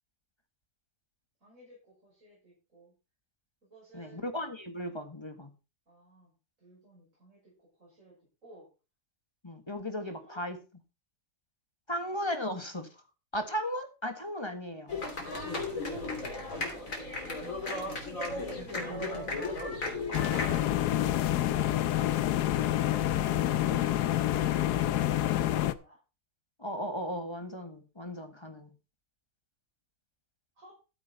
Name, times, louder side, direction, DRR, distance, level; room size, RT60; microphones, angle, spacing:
voice 1, 1.4-2.9 3.6-4.3 5.9-8.1 8.4-8.7 10.0-10.4 15.3-17.7 18.7-19.5 22.7-23.8 24.3-26.0 30.5-30.8, right 2 dB, 50° right, -6 dB, 6.7 m, -56 dB
voice 2, 3.9-5.5 9.4-10.6 11.9-12.9 13.3-15.0 17.4-17.5 18.6-19.3 26.6-28.7, equal, 15° left, 7 dB, 1.4 m, -36 dB
sound 1, 14.9-20.6, left 2 dB, 55° left, 3.6 m, -35 dB
sound 2, 20.1-25.7, left 13 dB, 75° left, 1.2 m, -27 dB
13.0 x 7.9 x 4.1 m, 0.31 s
omnidirectional pair, 1.7 m